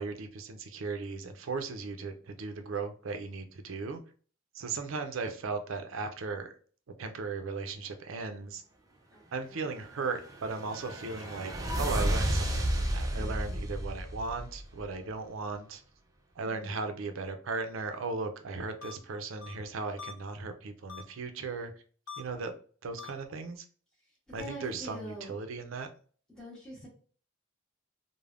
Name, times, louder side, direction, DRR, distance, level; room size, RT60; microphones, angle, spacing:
voice 1, 0.0-4.0 4.5-6.5 7.0-8.6 9.3-15.8 16.4-21.7 22.2-22.5 22.8-23.6 24.3-25.9, right 4 dB, 80° right, 7 dB, 0.4 m, -37 dB
voice 2, 9.1-9.7 13.1-13.7 16.4-16.8 24.3-25.4 26.3-26.9, equal, 5° left, -6 dB, 0.8 m, -45 dB
sound 1, 10.0-14.9, right 1 dB, 15° right, 0.3 m, -32 dB
sound 2, 18.8-18.9 19.4-19.5 20.0-20.1 20.9-21.0 22.1-22.2 23.0-23.1, left 7 dB, 80° left, 0.5 m, -42 dB
3.3 x 2.1 x 2.4 m, 0.43 s
head